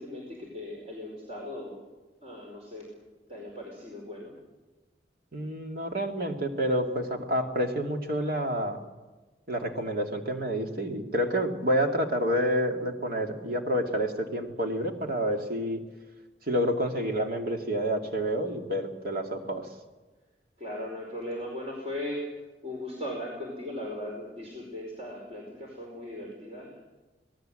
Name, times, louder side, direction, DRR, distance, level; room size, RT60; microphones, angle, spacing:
voice 1, 0.0-1.8 2.2-2.9 3.3-4.3 20.6-22.2 22.6-26.8, left 1 dB, 35° right, -2 dB, 4.9 m, -38 dB
voice 2, 5.3-8.8 9.5-15.8 16.5-19.7, equal, 55° right, 3 dB, 2.7 m, -28 dB
26.0 x 18.5 x 7.9 m, 1.2 s
head